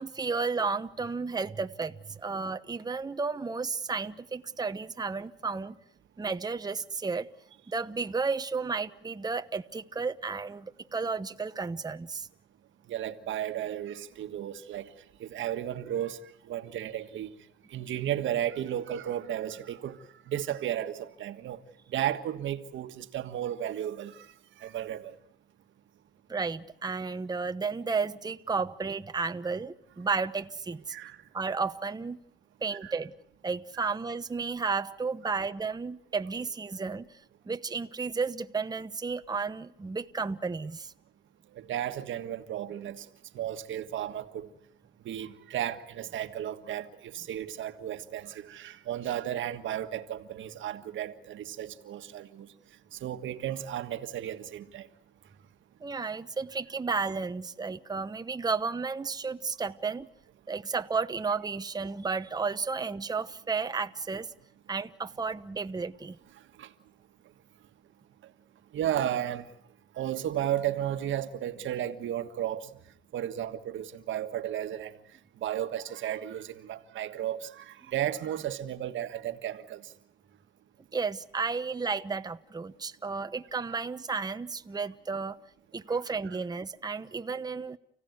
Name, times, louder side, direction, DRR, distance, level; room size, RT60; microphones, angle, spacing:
voice 1, 0.0-5.8 6.2-7.3 7.7-12.3 26.3-31.0 31.3-32.2 32.6-33.1 33.4-37.2 37.5-40.9 55.8-60.1 60.5-64.3 64.7-66.2 80.9-85.4 85.7-87.8, right 4 dB, 20° right, 1.0 m, -32 dB
voice 2, 12.9-14.9 15.2-16.2 16.5-17.3 17.7-20.0 20.3-21.6 21.9-24.3 24.6-25.1 30.9-31.2 32.8-32.9 33.8-33.9 41.6-43.0 43.3-44.5 45.0-52.5 52.9-54.9 66.6-66.7 68.7-69.4 70.0-72.7 73.1-74.9 75.4-79.8, right 11 dB, 75° right, 1.6 m, -34 dB
30.0 x 16.5 x 9.5 m
cardioid pair, 90°, 20 cm